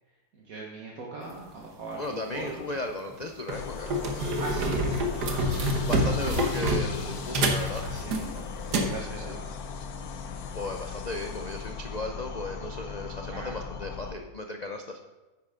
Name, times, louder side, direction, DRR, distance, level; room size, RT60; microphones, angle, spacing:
voice 1, 0.3-2.7 4.4-5.8 7.8-9.6 13.3-13.6, right 3 dB, 55° right, -3 dB, 1.8 m, -40 dB
voice 2, 2.0-3.9 5.6-7.8 9.1-9.4 10.5-15.0, left 2 dB, 90° left, 4 dB, 0.3 m, -35 dB
sound 1, 2.3-2.5 3.1-3.2 3.5-9.0, right 1 dB, 75° right, 1.7 m, -27 dB
sound 2, 3.5-14.2, left 5 dB, 70° left, 1.2 m, -38 dB
10.0 x 8.7 x 3.7 m, 1.2 s
omnidirectional pair, 1.8 m